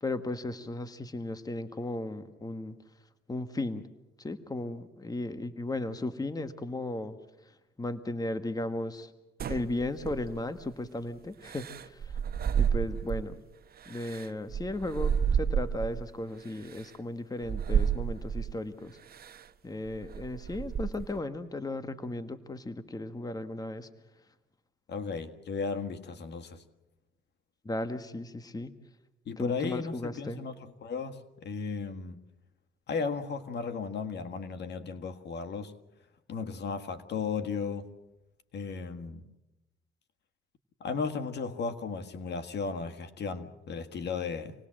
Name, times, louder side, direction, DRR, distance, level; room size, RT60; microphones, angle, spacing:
voice 1, 0.0-2.7 3.3-3.8 4.2-7.2 7.8-9.1 9.5-12.2 12.5-13.4 13.9-19.0 19.6-23.9 27.6-28.7 29.4-30.4, left 2 dB, 20° left, 10 dB, 1.4 m, -35 dB
sound 1, 9.4-10.6 11.4-13.4 13.8-16.0 16.7-16.8 17.4-18.6 19.1-19.4 19.9-21.2, right 8 dB, 50° right, 1.0 m, -31 dB
voice 2, 24.9-26.6 29.2-32.2 32.9-35.7 36.3-37.9 38.5-39.2 40.8-44.5, left 5 dB, 60° left, 7 dB, 1.7 m, -35 dB
27.0 x 19.0 x 7.6 m, 0.96 s
cardioid pair, 90°, 20 cm